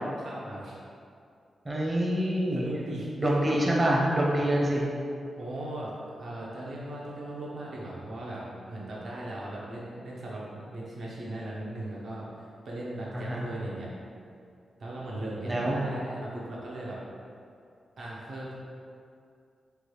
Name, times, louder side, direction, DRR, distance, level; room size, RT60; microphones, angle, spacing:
voice 1, 0.2-0.8 2.5-3.6 5.4-5.9 6.2-13.9 14.8-17.0 18.0-18.6, right 1 dB, 70° right, -5 dB, 0.6 m, -38 dB
voice 2, 1.6-2.7 3.2-4.9 13.1-13.5 15.4-15.8, right 1 dB, 30° right, -3 dB, 0.6 m, -26 dB
3.2 x 2.2 x 3.1 m, 2.4 s
cardioid pair, 70°, 0 cm